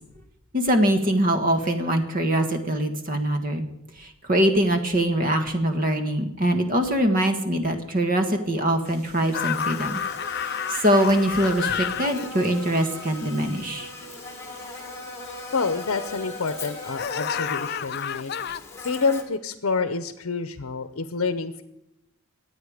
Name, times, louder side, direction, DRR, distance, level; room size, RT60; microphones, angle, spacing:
voice 1, 0.5-3.7 4.0-10.0 10.3-13.9, right 1 dB, 40° right, 6 dB, 1.5 m, -23 dB
sound 1, 8.0-8.1 8.8-17.0, right 1 dB, 90° right, 6.5 m, -49 dB
sound 2, 9.3-13.7 17.0-18.6, left 8 dB, 45° left, 0.4 m, -30 dB
Buzz, 9.3-19.2, left 3 dB, 10° left, 1.5 m, -39 dB
voice 2, 15.5-18.3 18.8-21.6, left 4 dB, 75° left, 11 dB, 0.8 m, -28 dB
23.5 x 8.8 x 5.0 m, 0.88 s
head